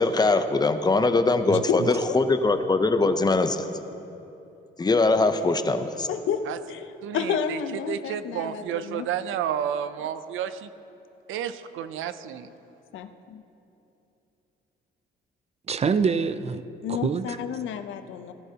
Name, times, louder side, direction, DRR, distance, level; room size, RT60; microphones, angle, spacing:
voice 1, 0.0-3.7 4.8-6.1, left 3 dB, 20° left, 9 dB, 0.7 m, -22 dB
voice 2, 1.5-1.9 15.7-17.4, right 5 dB, 30° right, 13 dB, 0.4 m, -26 dB
voice 3, 6.1-9.1 12.9-13.4 16.8-18.3, left 7 dB, 75° left, 9 dB, 0.7 m, -30 dB
voice 4, 7.0-7.6 7.9-10.7 11.3-12.5, right 9 dB, 85° right, 12 dB, 0.5 m, -31 dB
18.0 x 10.5 x 2.9 m, 2.9 s
cardioid pair, 90°, 20 cm